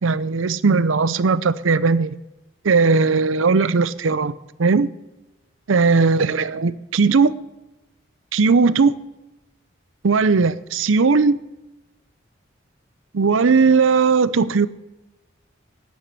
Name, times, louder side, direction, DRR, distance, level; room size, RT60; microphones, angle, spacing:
voice 1, 0.0-2.2 2.6-4.9 5.7-7.4 8.3-8.9 10.0-11.4 13.1-14.7, right 4 dB, 85° right, 0.6 m, -18 dB
11.0 x 8.4 x 7.5 m
head